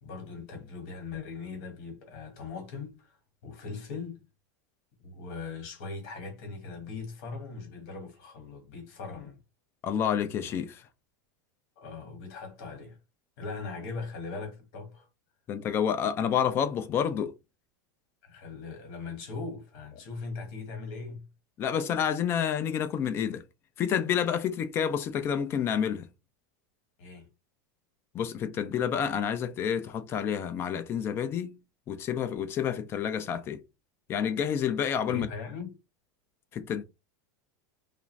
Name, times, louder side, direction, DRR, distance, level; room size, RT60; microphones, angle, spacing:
voice 1, 0.0-3.2 3.4-4.2 5.0-9.4 11.8-13.0 13.4-15.1 18.2-21.2 27.0-27.3 35.1-35.8, left 4 dB, 50° left, 1.5 m, -40 dB
voice 2, 9.8-10.9 15.5-17.3 21.6-23.4 23.8-26.1 28.1-31.6 31.9-33.6 34.1-35.3 36.5-36.8, left 8 dB, 25° left, 0.3 m, -29 dB
2.4 x 2.4 x 3.1 m
supercardioid pair, 165°, 10 cm